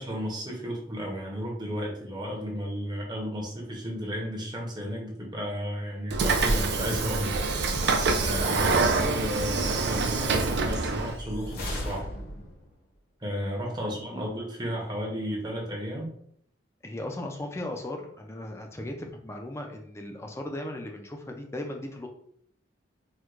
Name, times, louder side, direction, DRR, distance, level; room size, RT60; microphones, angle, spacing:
voice 1, 0.0-7.8 8.2-12.1 13.2-16.1, equal, 20° right, -1 dB, 0.7 m, -33 dB
Train / Sliding door, 6.1-11.2, right 3 dB, 55° right, 0.4 m, -25 dB
sound 1, 10.9-12.7, left 1 dB, 50° left, 0.7 m, -36 dB
voice 2, 13.8-14.3 16.8-22.1, left 1 dB, 15° left, 3 dB, 0.3 m, -37 dB
4.4 x 2.2 x 2.4 m, 0.67 s
head